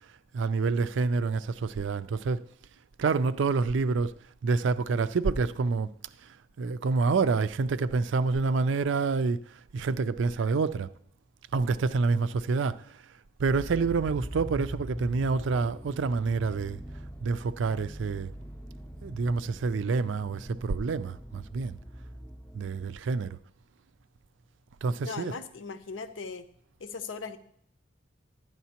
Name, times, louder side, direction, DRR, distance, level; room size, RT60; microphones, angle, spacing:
voice 1, 0.3-2.4 3.0-4.1 4.4-5.9 6.6-9.4 9.7-10.9 11.5-13.0 13.4-16.8 17.2-18.3 19.0-21.8 22.5-23.4 24.8-25.4, right 4 dB, 70° right, 0.4 m, -27 dB
sound 1, 13.5-22.9, equal, 10° left, 0.6 m, -42 dB
voice 2, 25.0-26.5 26.8-27.4, left 4 dB, 75° left, 0.6 m, -38 dB
11.5 x 9.2 x 2.9 m
head